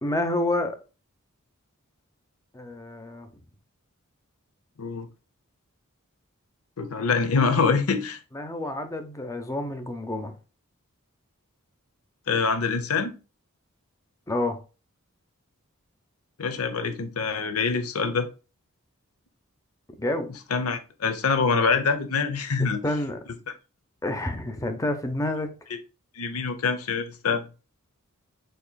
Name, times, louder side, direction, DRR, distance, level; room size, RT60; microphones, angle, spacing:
voice 1, 0.0-0.8 2.5-3.3 8.3-10.3 14.3-14.6 20.0-20.3 22.8-23.2 24.0-25.5, left 1 dB, 15° left, 0.6 m, -28 dB
voice 2, 6.8-8.2 12.3-13.1 16.4-18.3 20.5-22.8 26.2-27.4, left 5 dB, 85° left, 0.7 m, -25 dB
6.5 x 2.9 x 2.2 m
head